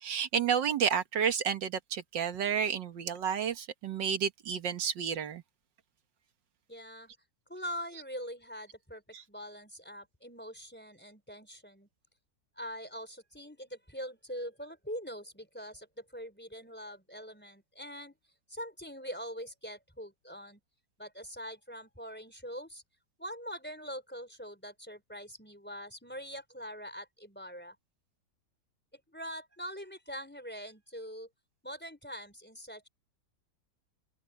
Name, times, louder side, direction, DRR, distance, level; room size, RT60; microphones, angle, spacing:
voice 1, 0.0-5.4 9.1-9.2, right 7 dB, 85° right, 1.9 m, -31 dB
voice 2, 6.7-7.1 7.5-9.0 9.3-11.9 12.6-18.2 18.5-20.6 21.0-22.8 23.2-27.8 29.1-31.3 31.6-32.9, equal, 5° left, 4.5 m, -43 dB
open air
omnidirectional pair, 1.9 m